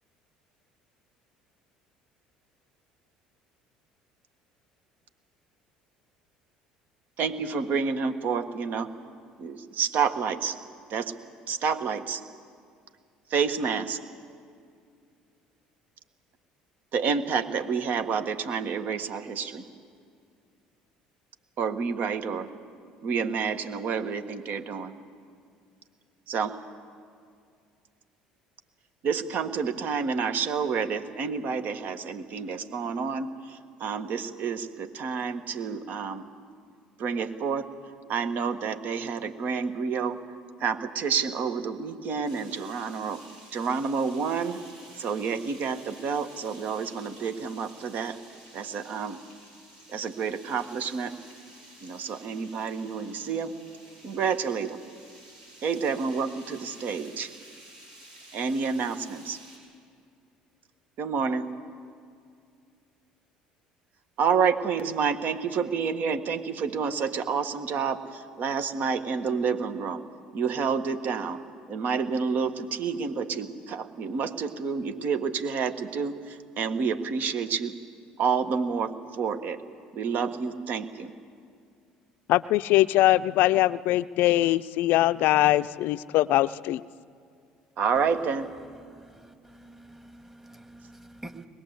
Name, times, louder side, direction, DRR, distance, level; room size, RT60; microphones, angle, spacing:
voice 1, 7.2-8.9 9.4-10.6 10.9-11.1 11.5-12.2 13.3-14.0 16.9-19.7 21.6-22.5 23.0-24.9 26.3-26.6 29.0-36.3 37.0-37.7 38.1-40.2 40.6-43.2 43.5-44.6 45.0-48.2 48.5-49.2 49.9-51.1 51.8-53.5 54.0-54.8 55.6-57.3 58.3-59.4 61.0-61.5 64.2-70.0 70.3-71.4 71.7-77.7 78.2-79.6 79.9-81.1 87.8-88.5, right 6 dB, 55° right, 9 dB, 1.5 m, -29 dB
sound 1, 42.2-59.6, right 1 dB, 90° right, 6.8 m, -51 dB
voice 2, 82.3-86.8, left 16 dB, 65° left, 16 dB, 0.5 m, -22 dB
voice 3, 89.2-91.5, right 1 dB, 10° right, 6 dB, 2.0 m, -47 dB
22.0 x 21.0 x 8.1 m, 2.3 s
hypercardioid pair, 65°, 4 cm